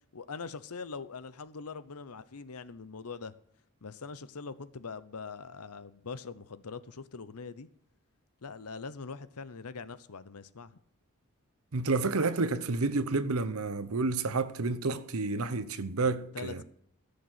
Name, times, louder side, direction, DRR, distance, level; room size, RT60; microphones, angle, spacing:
voice 1, 0.1-3.3 3.8-7.7 8.4-10.7 16.3-16.6, left 4 dB, 90° left, 0.8 m, -42 dB
voice 2, 11.7-16.6, right 3 dB, 75° right, 0.9 m, -30 dB
15.0 x 6.7 x 8.0 m
head